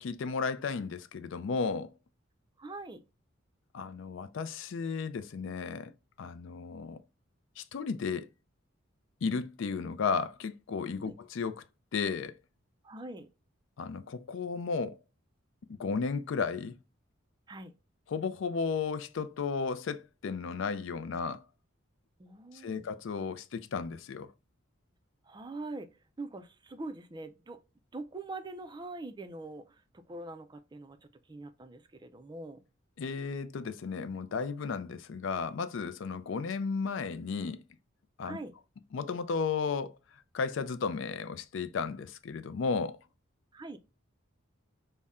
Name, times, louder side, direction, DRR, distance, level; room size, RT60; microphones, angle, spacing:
voice 1, 0.0-1.9 3.7-5.9 6.2-7.0 7.6-8.3 9.2-11.6 11.9-12.4 13.8-15.0 15.7-16.8 18.1-21.4 22.5-24.3 33.0-37.6 38.2-38.4 38.9-40.0 40.3-43.0, left 5 dB, 65° left, 0.4 m, -34 dB
voice 2, 2.6-3.0 11.0-11.1 12.8-13.3 17.5-17.7 22.2-22.8 25.2-25.9 26.2-27.6 27.9-29.8 30.1-31.0 31.3-32.6 38.2-38.5 43.5-43.8, right 2 dB, 20° right, 0.4 m, -43 dB
5.4 x 2.1 x 3.5 m
head